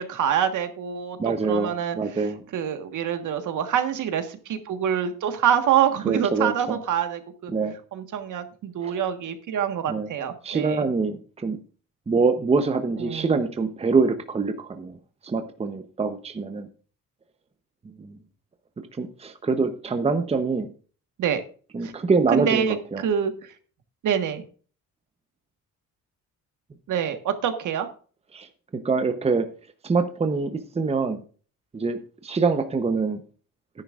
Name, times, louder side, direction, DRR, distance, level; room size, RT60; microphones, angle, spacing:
voice 1, 0.0-2.2 2.5-7.5 7.9-10.8 13.0-13.4 21.2-21.4 21.8-21.9 22.3-23.5 24.0-24.4 26.9-27.9, right 9 dB, 65° right, 7 dB, 1.5 m, -26 dB
voice 2, 1.2-2.4 6.0-6.8 7.5-7.7 8.8-9.0 9.9-10.1 10.4-11.6 12.1-15.0 15.2-16.7 18.0-18.2 18.8-20.7 21.7-23.0 28.3-28.5 28.7-29.5 29.8-31.2 31.7-33.2, right 4 dB, 20° right, 8 dB, 0.9 m, -25 dB
12.5 x 10.5 x 2.5 m, 0.39 s
cardioid pair, 135°, 33 cm